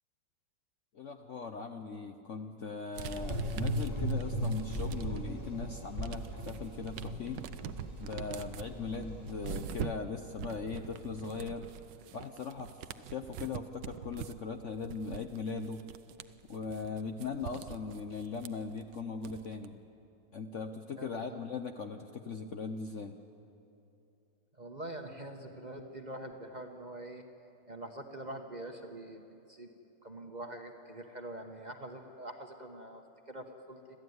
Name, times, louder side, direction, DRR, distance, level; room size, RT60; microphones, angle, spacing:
voice 1, 0.9-7.4 8.0-11.7 12.1-15.8 16.5-19.8 20.3-23.2, left 5 dB, 55° left, 6 dB, 1.0 m, -39 dB
sound 1, 2.9-5.4 5.7-19.7, right 10 dB, 75° right, 1.4 m, -45 dB
Gurgling / Engine, 3.0-9.8, right 1 dB, 40° left, 4.5 m, -37 dB
voice 2, 21.0-21.4 24.6-27.2 27.7-29.7 30.0-33.0 33.3-33.8, right 1 dB, 25° right, 4 dB, 1.1 m, -44 dB
26.0 x 14.5 x 9.5 m, 2.8 s
omnidirectional pair, 2.0 m